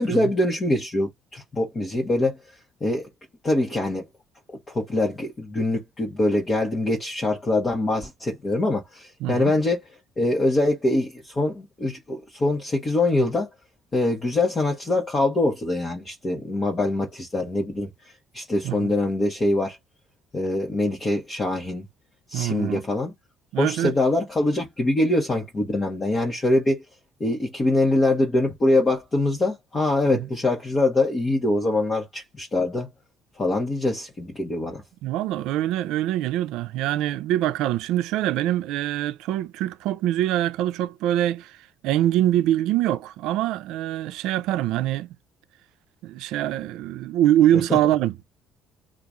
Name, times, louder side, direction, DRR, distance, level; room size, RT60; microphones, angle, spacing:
voice 1, 0.0-2.4 2.8-3.1 3.4-4.0 4.5-9.8 10.2-13.5 13.9-17.9 18.3-19.8 20.3-21.9 22.3-23.1 23.6-26.8 27.2-32.9 33.4-34.8 47.7-47.8, left 2 dB, 25° left, 1.2 m, -24 dB
voice 2, 9.2-9.5 18.6-18.9 22.3-22.8 23.5-23.9 30.1-30.3 35.0-41.6 41.8-45.1 46.0-48.2, right 13 dB, 80° right, 0.4 m, -24 dB
3.0 x 2.4 x 3.7 m
cardioid pair, 135°, 0 cm